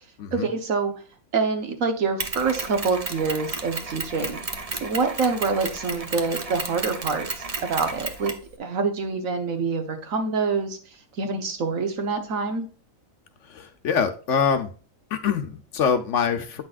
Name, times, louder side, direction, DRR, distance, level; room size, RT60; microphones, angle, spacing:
voice 1, 0.3-0.9 1.3-4.4 4.8-8.3 8.6-10.8 11.2-12.7, right 4 dB, 70° right, 7 dB, 1.5 m, -26 dB
Mechanisms, 2.2-8.5, right 3 dB, 35° right, 0.7 m, -33 dB
voice 2, 13.5-14.7 15.1-16.6, left 6 dB, 60° left, 8 dB, 1.0 m, -24 dB
8.8 x 6.0 x 2.4 m, 0.38 s
omnidirectional pair, 1.5 m